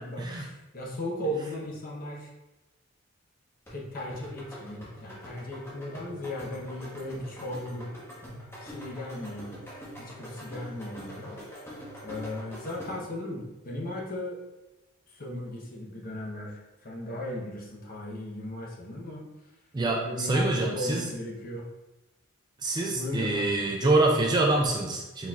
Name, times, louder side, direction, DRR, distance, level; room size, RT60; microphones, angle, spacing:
voice 1, 0.0-2.3 3.7-7.9 8.6-9.6 10.0-11.7 12.0-14.4 15.1-19.2 19.9-21.7 22.9-23.7, left 1 dB, 40° left, -1 dB, 0.8 m, -36 dB
sound 1, 3.7-13.2, equal, 10° left, 0.9 m, -44 dB
voice 2, 19.7-21.0 22.6-25.3, right 2 dB, 20° right, 0 dB, 0.3 m, -26 dB
4.3 x 4.1 x 2.3 m, 1.0 s
head